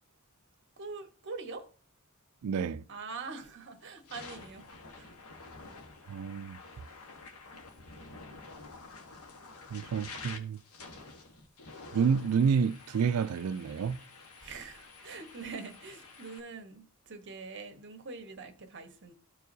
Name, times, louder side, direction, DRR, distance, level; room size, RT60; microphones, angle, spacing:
voice 1, 0.8-1.7 2.9-4.7 4.9-5.1 14.4-19.1, right 4 dB, 55° right, 1.2 m, -44 dB
voice 2, 2.4-2.8 6.1-6.6 9.7-10.6 11.9-14.0, right 6 dB, 80° right, 0.4 m, -29 dB
sound 1, 3.2-3.5 3.9-16.4, left 3 dB, 80° left, 1.3 m, -49 dB
14.0 x 4.7 x 2.7 m
head